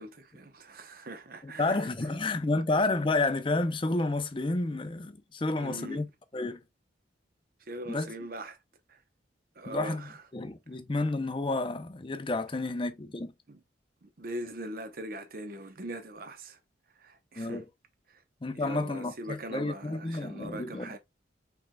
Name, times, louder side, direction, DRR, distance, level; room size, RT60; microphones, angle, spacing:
voice 1, 0.0-1.9 5.4-6.0 7.7-8.6 8.9-9.0 9.6-10.2 13.5-13.6 14.0-16.6 17.0-17.6 18.5-21.0, right 1 dB, 50° right, 0.8 m, -41 dB
voice 2, 1.4-6.6 7.9-8.1 9.7-13.3 17.4-17.6 18.4-21.0, left 2 dB, 25° left, 0.5 m, -30 dB
4.6 x 3.8 x 2.2 m
head